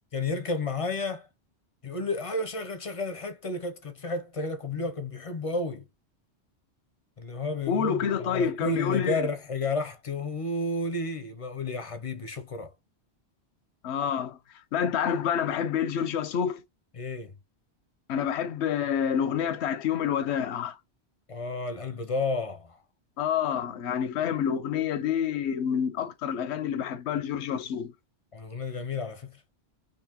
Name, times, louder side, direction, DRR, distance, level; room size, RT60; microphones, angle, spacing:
voice 1, 0.1-1.3 1.8-5.9 7.2-12.7 16.9-17.3 21.3-22.8 28.3-29.4, left 3 dB, 45° left, 0.5 m, -32 dB
voice 2, 7.7-9.3 13.8-14.4 14.7-16.6 18.1-20.8 23.2-27.9, left 8 dB, 80° left, 0.9 m, -28 dB
3.8 x 2.7 x 2.8 m
omnidirectional pair, 1.1 m